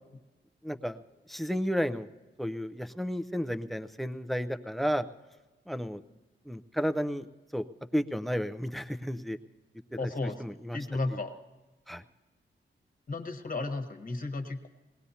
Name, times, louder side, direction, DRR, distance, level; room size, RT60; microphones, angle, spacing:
voice 1, 0.6-1.0 1.3-2.1 2.4-5.1 5.7-6.0 6.5-7.3 7.5-7.7 7.9-9.4 10.0-10.1 10.4-10.8 11.9-12.0, equal, ahead, 11 dB, 0.5 m, -32 dB
voice 2, 10.0-10.4 10.7-11.3 13.1-14.7, left 2 dB, 40° left, 6 dB, 1.3 m, -33 dB
21.0 x 18.0 x 2.8 m, 1.2 s
cardioid pair, 85°, 20 cm